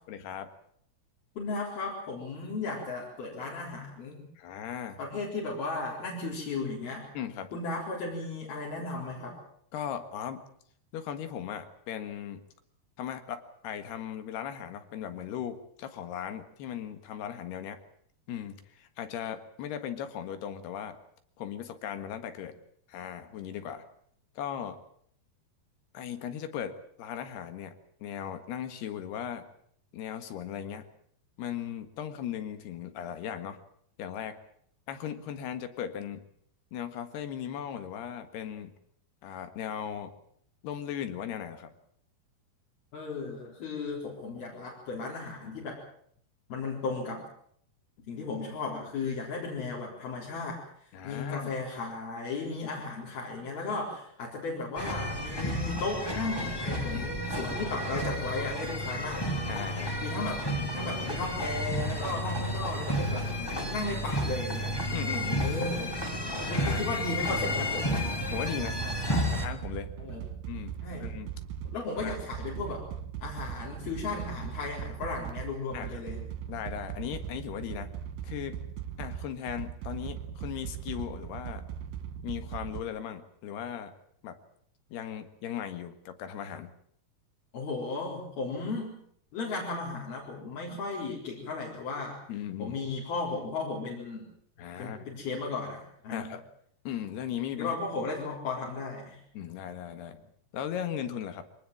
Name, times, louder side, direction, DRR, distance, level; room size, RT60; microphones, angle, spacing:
voice 1, 0.1-0.5 4.4-5.0 7.2-7.5 9.7-10.4 10.9-12.4 13.0-17.8 18.3-21.0 21.4-22.6 22.9-23.8 24.4-24.8 25.9-27.8 28.0-29.5 29.9-30.9 31.4-33.6 34.0-34.4 34.9-36.2 36.7-38.7 39.2-40.1 40.6-41.7 50.9-51.5 56.9-57.1 59.5-60.0 64.9-65.5 66.4-66.8 68.3-68.8 69.1-69.9 70.5-71.3 72.0-72.2 75.7-76.0 76.5-77.9 78.2-78.6 79.0-81.7 82.2-83.9 84.2-84.4 84.9-86.7 92.3-92.8 94.6-95.1 96.1-96.4 96.9-97.8 99.4-100.3 100.5-101.5, left 9 dB, 85° left, 9 dB, 3.7 m, -37 dB
voice 2, 1.4-4.2 5.0-7.1 7.5-9.4 42.9-45.8 46.5-47.2 48.0-59.3 60.0-60.4 60.7-64.8 65.4-66.0 66.4-67.9 70.0-70.3 70.8-71.1 71.7-72.8 73.2-76.3 87.5-89.0 89.3-92.2 92.6-94.3 94.8-96.4 97.6-99.2, left 3 dB, 70° left, -5 dB, 6.0 m, -35 dB
sound 1, 54.8-69.5, equal, 10° left, 2.0 m, -32 dB
sound 2, 67.9-82.8, right 9 dB, 65° right, 2.8 m, -39 dB
24.0 x 19.5 x 7.5 m, 0.64 s
omnidirectional pair, 4.6 m